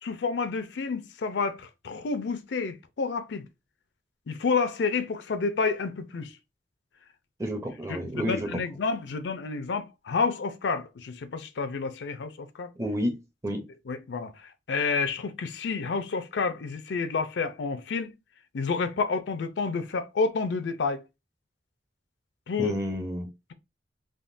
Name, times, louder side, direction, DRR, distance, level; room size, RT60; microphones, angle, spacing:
voice 1, 0.0-3.5 4.3-6.3 7.9-12.7 13.9-18.1 18.5-21.0 22.5-22.8, left 4 dB, 80° left, 0.4 m, -29 dB
voice 2, 7.4-8.5 12.8-13.2 13.4-13.6 22.6-23.3, equal, 15° right, 0.6 m, -30 dB
3.5 x 2.1 x 2.5 m
head